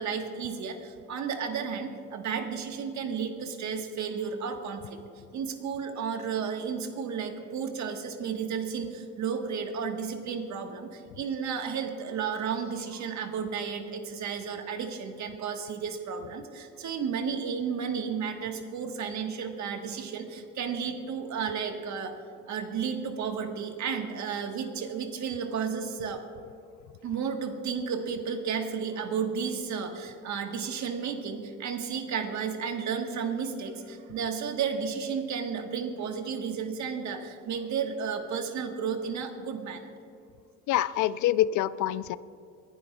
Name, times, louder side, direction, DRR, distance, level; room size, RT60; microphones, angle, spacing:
voice 1, 0.0-5.0 5.3-22.1 22.5-26.2 27.0-39.8, right 6 dB, 70° right, 5 dB, 1.4 m, -33 dB
voice 2, 40.7-42.2, left 13 dB, 75° left, 16 dB, 0.5 m, -26 dB
24.0 x 11.0 x 2.3 m, 2.6 s
cardioid pair, 90°, 30 cm